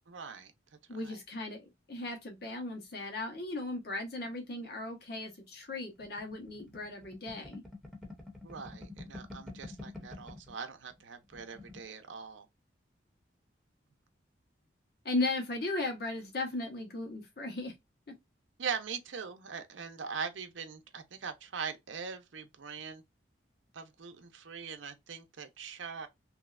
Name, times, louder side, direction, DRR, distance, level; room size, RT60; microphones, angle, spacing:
voice 1, 0.1-0.5 1.0-1.2 8.4-12.5 18.6-23.0 23.7-26.1, right 6 dB, 85° right, 0.6 m, -41 dB
voice 2, 0.9-7.6 15.0-17.7, left 2 dB, 55° left, 1.0 m, -36 dB
sound 1, 6.0-10.6 10.9-11.0 11.3-11.9, left 2 dB, ahead, 0.7 m, -47 dB
3.1 x 2.6 x 2.3 m
head